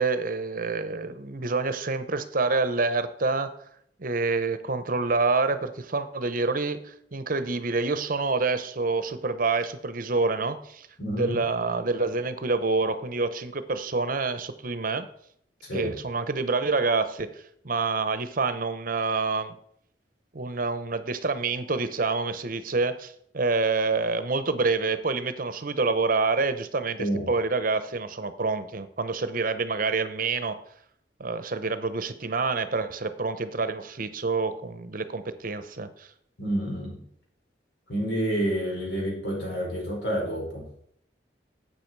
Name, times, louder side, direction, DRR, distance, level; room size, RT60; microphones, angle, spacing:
voice 1, 0.0-3.7 4.0-10.9 11.1-15.1 15.7-19.5 20.3-30.6 31.2-36.1, right 3 dB, 50° right, 12 dB, 0.9 m, -27 dB
voice 2, 11.0-11.4 15.6-15.9 27.0-27.2 36.4-37.0 37.9-40.6, right 1 dB, 80° left, -2 dB, 5.2 m, -29 dB
12.0 x 8.1 x 4.7 m, 0.69 s
head